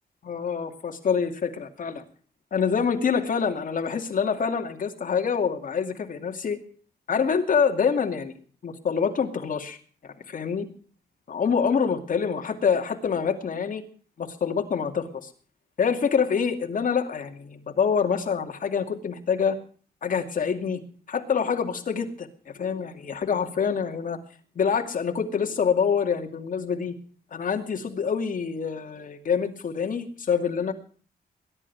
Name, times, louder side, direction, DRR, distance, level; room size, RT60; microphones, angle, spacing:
voice 1, 0.2-2.0 2.5-6.6 7.1-8.3 8.6-9.8 10.0-10.7 11.3-13.8 14.2-15.3 15.8-19.6 20.0-20.8 21.1-24.2 24.6-26.9 27.3-30.7, left 6 dB, 55° left, 4 dB, 2.5 m, -26 dB
20.5 x 11.5 x 4.7 m, 0.43 s
wide cardioid pair, 145°, 17 cm